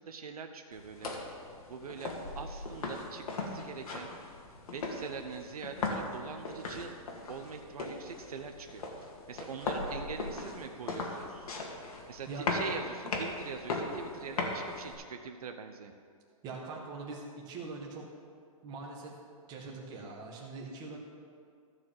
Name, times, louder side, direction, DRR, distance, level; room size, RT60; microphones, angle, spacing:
voice 1, 0.0-4.1 4.7-6.9 7.3-11.5 12.1-15.9, right 5 dB, 75° right, 6 dB, 0.9 m, -43 dB
sound 1, 0.7-14.9, left 3 dB, 75° left, 2.1 m, -38 dB
voice 2, 16.4-18.0 18.6-19.1 19.5-21.0, right 3 dB, 20° right, -1 dB, 1.7 m, -42 dB
14.5 x 4.9 x 7.4 m, 2.2 s
hypercardioid pair, 155°, 19 cm